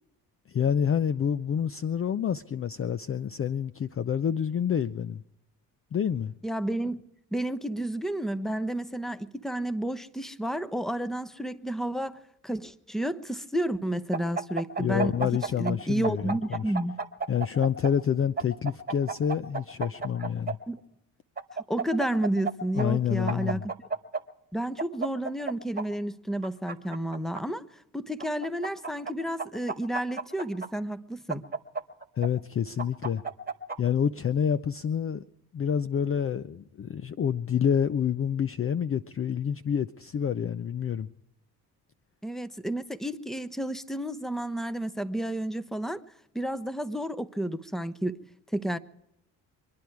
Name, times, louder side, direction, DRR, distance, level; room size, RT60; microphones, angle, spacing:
voice 1, 0.5-5.2 5.9-6.3 14.8-16.6 17.3-20.6 22.7-23.6 32.2-33.2 33.8-35.2 35.5-41.1, left 8 dB, 30° left, 0.6 m, -28 dB
voice 2, 6.4-7.0 7.3-15.3 15.6-16.9 20.7-20.8 21.7-23.7 24.5-27.6 27.9-31.5 42.2-46.0 46.3-48.2 48.5-48.8, right 1 dB, ahead, 1.0 m, -31 dB
sound 1, 14.1-15.7 16.0-17.9 18.4-20.5 21.4-22.5 22.8-22.9 23.3-24.2 24.8-25.8 26.4-27.4 28.2-29.1 29.4-30.7 31.3-32.3 32.8-33.8, right 4 dB, 20° right, 1.7 m, -32 dB
25.0 x 10.5 x 4.7 m
hypercardioid pair, 55°, 44 cm